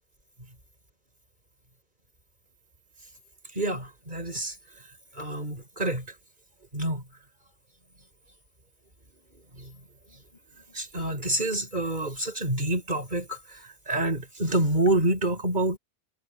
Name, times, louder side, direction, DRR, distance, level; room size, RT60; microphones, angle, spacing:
voice 1, 3.5-4.6 5.1-6.1 6.7-7.0 9.6-9.7 10.7-15.8, right 1 dB, 45° right, 5.5 m, -27 dB
omnidirectional pair, 1.1 m